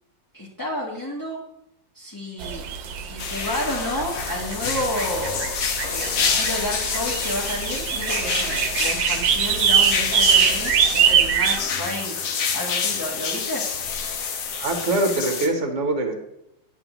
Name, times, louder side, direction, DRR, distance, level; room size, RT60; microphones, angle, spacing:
voice 1, 0.3-1.4 1.9-5.6 5.9-12.1 12.5-13.6, left 1 dB, 15° left, -5 dB, 1.0 m, -31 dB
Hawaii birds and soft rain field recording, 2.4-11.6, right 8 dB, 90° right, 1.4 m, -23 dB
sound 1, 3.2-15.5, left 6 dB, 80° left, 1.6 m, -28 dB
voice 2, 14.6-16.1, right 2 dB, 45° right, 4 dB, 1.3 m, -23 dB
10.5 x 7.0 x 3.0 m, 0.81 s
omnidirectional pair, 2.0 m